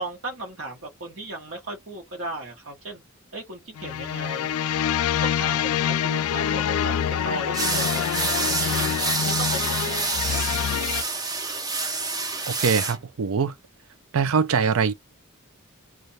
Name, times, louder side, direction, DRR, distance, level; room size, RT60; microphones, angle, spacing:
voice 1, 0.0-3.0 3.3-4.5 5.1-8.9 9.2-9.6 9.8-10.4, right 2 dB, 60° right, 1.2 m, -36 dB
sound 1, 3.8-11.0, left 9 dB, 90° left, 0.3 m, -26 dB
sound 2, 7.5-13.0, right 3 dB, 15° right, 0.5 m, -27 dB
voice 2, 12.5-13.5 14.1-14.9, right 6 dB, 80° right, 0.5 m, -22 dB
3.2 x 2.5 x 4.1 m
head